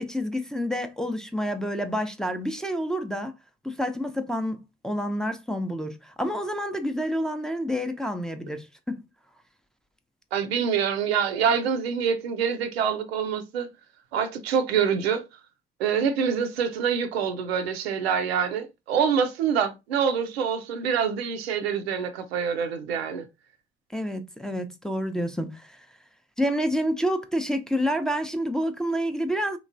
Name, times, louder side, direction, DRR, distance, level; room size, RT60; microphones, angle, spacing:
voice 1, 0.0-3.3 3.6-4.6 4.8-9.0 23.9-25.9 26.4-29.6, equal, ahead, 0.6 m, -28 dB
voice 2, 10.3-13.7 14.1-15.3 15.8-23.3, right 7 dB, 75° right, 0.5 m, -26 dB
3.6 x 3.0 x 2.5 m
figure-of-eight pair, 40°, 31 cm